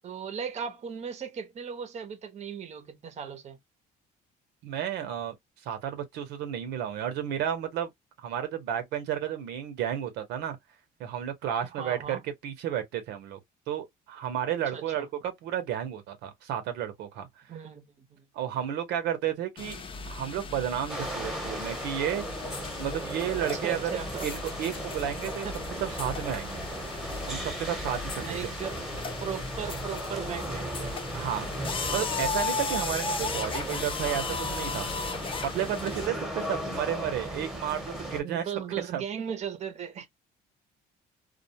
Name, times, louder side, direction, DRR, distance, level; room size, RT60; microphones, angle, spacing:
voice 1, 0.0-3.6 11.7-12.2 14.7-15.1 17.5-18.3 23.5-24.3 25.2-25.5 28.1-28.8 29.2-31.0 33.3-33.7 38.1-40.1, right 7 dB, 40° right, 0.7 m, -37 dB
voice 2, 4.6-5.3 5.6-7.9 8.2-10.6 11.0-13.4 13.7-17.3 18.3-19.8 20.1-22.2 22.8-23.9 24.2-25.5 25.8-26.7 27.3-28.2 31.1-31.5 31.9-34.9 35.4-38.5 38.9-39.0, right 10 dB, 85° right, 0.8 m, -32 dB
sound 1, 19.6-36.1, left 4 dB, 30° left, 0.6 m, -36 dB
sound 2, 20.9-38.2, right 1 dB, 5° right, 1.0 m, -37 dB
2.3 x 2.2 x 2.7 m
cardioid pair, 110°, 17 cm